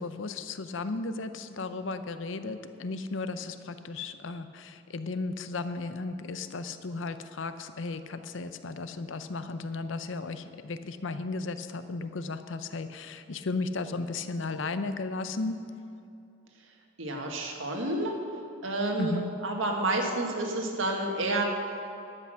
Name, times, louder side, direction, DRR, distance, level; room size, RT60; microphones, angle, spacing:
voice 1, 0.0-15.6 19.0-19.3, left 3 dB, 70° left, 11 dB, 0.6 m, -35 dB
voice 2, 17.0-18.1 18.6-21.4, right 2 dB, 75° right, 1 dB, 1.6 m, -29 dB
11.5 x 8.2 x 6.3 m, 2.7 s
head